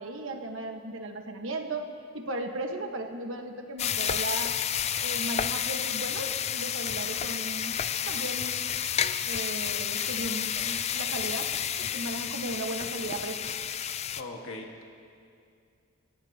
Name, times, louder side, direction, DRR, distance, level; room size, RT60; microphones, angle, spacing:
voice 1, 0.0-1.9 2.1-4.6 5.0-7.8 8.1-8.6 9.2-11.5 11.8-13.5, right 2 dB, 65° right, 4 dB, 1.4 m, -36 dB
sound 1, 3.8-14.2, left 9 dB, 30° left, 0.4 m, -31 dB
voice 2, 14.2-14.8, left 2 dB, 70° left, 1 dB, 1.8 m, -40 dB
28.0 x 18.0 x 2.9 m, 2.4 s
head